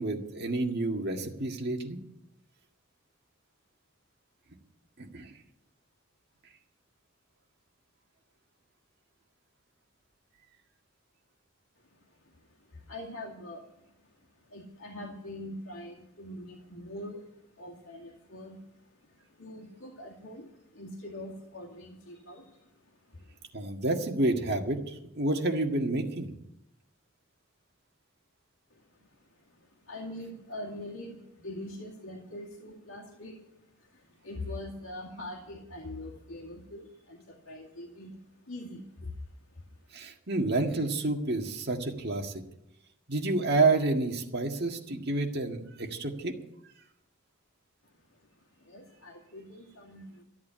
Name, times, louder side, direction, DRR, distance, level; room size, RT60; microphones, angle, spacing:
voice 1, 0.0-2.0 5.0-5.3 23.5-26.3 39.9-42.3 43.1-46.3, right 2 dB, 50° right, 2 dB, 1.8 m, -29 dB
voice 2, 11.8-23.5 28.7-39.9 47.8-50.2, left 1 dB, 80° left, -1 dB, 2.2 m, -44 dB
13.5 x 8.5 x 8.8 m, 0.82 s
head